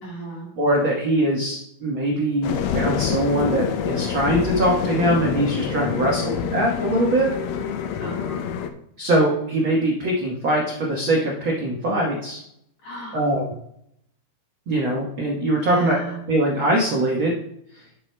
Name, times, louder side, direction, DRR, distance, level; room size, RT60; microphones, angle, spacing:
voice 1, 0.0-0.5 5.9-6.7 8.0-8.5 12.8-13.2 15.6-16.3, right 2 dB, 50° left, -3 dB, 2.1 m, -35 dB
voice 2, 0.6-7.3 9.0-12.4 13.1-13.6 14.7-16.0 16.3-17.3 17.7-17.8, right 1 dB, 80° right, -3 dB, 1.1 m, -22 dB
sound 1, 2.4-8.7, left 7 dB, 90° left, 2.6 m, -27 dB
12.0 x 6.3 x 2.2 m, 0.73 s
omnidirectional pair, 4.2 m